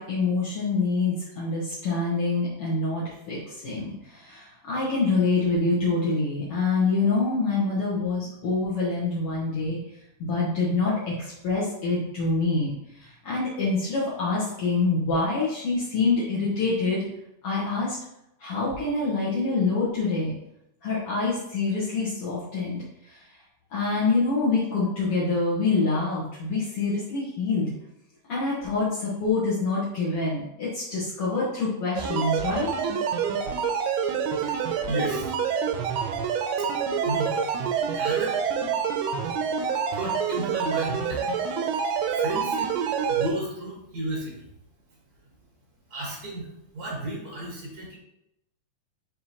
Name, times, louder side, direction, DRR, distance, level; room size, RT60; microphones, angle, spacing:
voice 1, 0.0-9.8 10.2-17.1 17.4-18.0 18.4-20.3 20.8-23.4 23.7-27.7 28.3-32.7, left 3 dB, 70° left, -7 dB, 1.3 m, -26 dB
sound 1, 32.0-43.3, right 6 dB, 90° right, 2.7 m, -27 dB
voice 2, 34.4-35.3 36.6-36.7 37.0-37.6 37.9-38.4 39.9-41.2 42.2-42.7 43.1-44.5 45.9-46.5 46.7-47.9, right 1 dB, 65° right, -3 dB, 0.9 m, -33 dB
9.3 x 3.7 x 2.9 m, 0.81 s
omnidirectional pair, 4.5 m